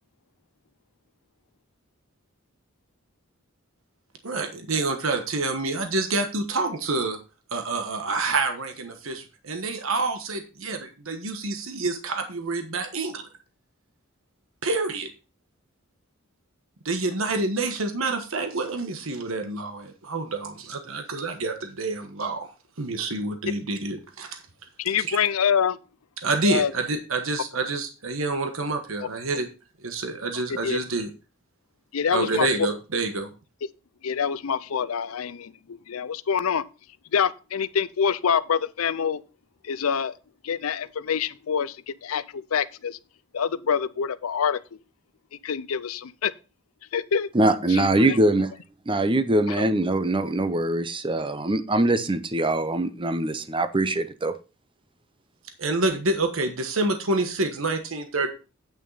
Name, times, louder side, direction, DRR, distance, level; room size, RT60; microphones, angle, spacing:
voice 1, 4.2-7.2 7.5-13.3 14.6-15.1 16.8-22.5 22.8-24.4 25.1-25.2 26.2-29.5 29.8-31.1 32.1-33.3 55.6-58.3, right 3 dB, 70° right, 1.3 m, -27 dB
voice 2, 24.8-25.8 26.4-26.7 30.6-30.8 31.9-32.5 34.0-36.6 37.1-39.2 39.6-40.1 40.4-43.0 43.3-44.6 45.4-46.3 46.9-47.3 47.7-48.2 49.5-49.6, left 7 dB, 85° left, 0.5 m, -26 dB
voice 3, 47.3-48.5 48.9-54.3, right 1 dB, 25° right, 0.8 m, -23 dB
8.9 x 6.3 x 4.1 m
head